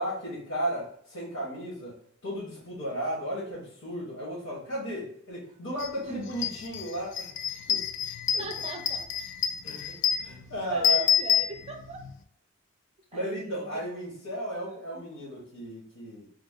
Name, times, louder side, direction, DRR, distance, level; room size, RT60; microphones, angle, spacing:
voice 1, 0.0-2.0 2.2-7.3 7.7-7.8 8.3-8.5 9.6-11.1 13.1-16.3, right 1 dB, 75° left, -4 dB, 1.4 m, -34 dB
sound 1, 5.8-5.9 6.3-12.1, left 8 dB, 55° left, 0.3 m, -28 dB
voice 2, 8.4-9.1 10.7-12.1 13.1-13.8 14.7-15.0, right 3 dB, 30° right, 4 dB, 0.5 m, -41 dB
3.5 x 2.0 x 3.6 m, 0.63 s
head